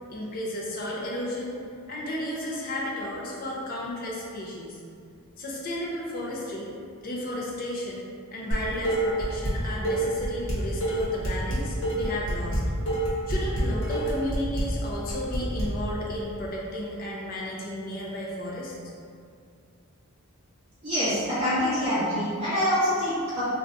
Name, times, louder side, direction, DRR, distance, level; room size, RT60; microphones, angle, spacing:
voice 1, 0.1-1.6 1.9-4.8 5.4-6.7 7.0-8.0 8.3-12.6 13.3-18.7, left 1 dB, 40° left, -4 dB, 0.5 m, -33 dB
Dishes pots and pans, 8.5-9.5 9.8-15.6, right 1 dB, 65° left, 0.9 m, -27 dB
voice 2, 20.8-23.5, equal, 25° right, -15 dB, 0.7 m, -25 dB
2.6 x 2.3 x 3.3 m, 2.3 s
head